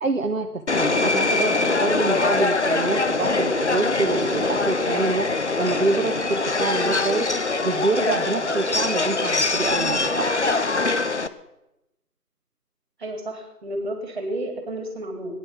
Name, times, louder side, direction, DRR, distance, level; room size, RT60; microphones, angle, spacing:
voice 1, 0.0-7.3 7.6-10.4, right 3 dB, 55° right, 4 dB, 1.2 m, -26 dB
Subway metro underground, 0.7-11.3, left 3 dB, 50° left, 0.7 m, -23 dB
voice 2, 13.0-15.4, right 1 dB, 30° right, 4 dB, 3.5 m, -31 dB
18.5 x 11.0 x 6.0 m, 0.92 s
figure-of-eight pair, 165°, 47 cm